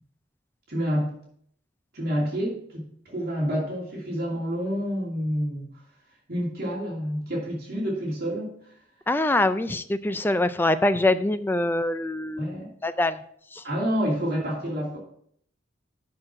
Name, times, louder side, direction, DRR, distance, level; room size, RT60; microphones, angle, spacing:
voice 1, 0.7-1.1 1.9-5.7 6.3-8.5 12.4-12.7 13.6-15.0, equal, 50° right, -4 dB, 2.6 m, -28 dB
voice 2, 9.1-13.2 13.5-13.6, left 2 dB, 10° left, 11 dB, 0.3 m, -24 dB
6.6 x 6.2 x 5.9 m, 0.65 s
head